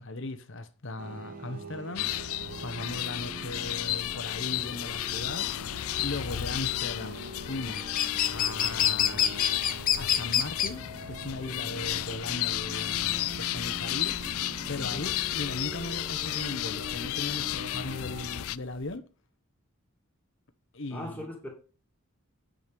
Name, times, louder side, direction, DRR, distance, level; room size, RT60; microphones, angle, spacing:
voice 1, 0.0-9.4 9.9-19.1 20.7-21.3, left 2 dB, 60° left, 1.1 m, -38 dB
sound 1, 1.0-18.5, right 1 dB, 40° right, 1.3 m, -43 dB
sound 2, 2.0-18.6, left 15 dB, 75° left, 0.3 m, -33 dB
sound 3, 2.6-18.9, left 9 dB, 40° left, 0.8 m, -31 dB
voice 2, 14.7-15.2 20.9-21.5, left 1 dB, 5° left, 2.6 m, -40 dB
9.4 x 5.2 x 5.3 m
head